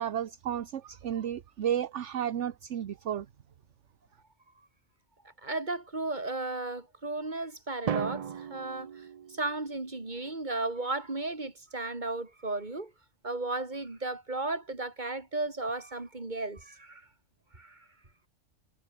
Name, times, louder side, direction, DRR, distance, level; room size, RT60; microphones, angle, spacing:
voice 1, 0.0-3.3, right 10 dB, 70° right, 1.2 m, -32 dB
voice 2, 5.4-8.9 9.3-12.9 13.2-17.0 17.5-17.8, right 2 dB, 35° right, 3.2 m, -34 dB
Drum, 7.9-9.9, right 8 dB, 55° right, 0.4 m, -36 dB
omnidirectional pair, 1.3 m